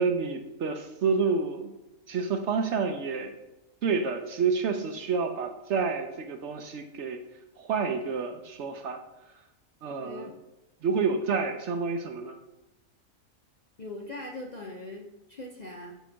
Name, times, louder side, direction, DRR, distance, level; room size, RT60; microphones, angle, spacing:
voice 1, 0.0-1.7 2.1-3.3 3.8-7.2 7.6-9.0 9.8-10.3 10.8-12.3, right 5 dB, 65° right, 5 dB, 0.8 m, -29 dB
voice 2, 9.9-10.3 13.8-15.9, left 2 dB, 45° left, -1 dB, 0.5 m, -41 dB
7.3 x 3.0 x 5.7 m, 0.99 s
omnidirectional pair, 1.5 m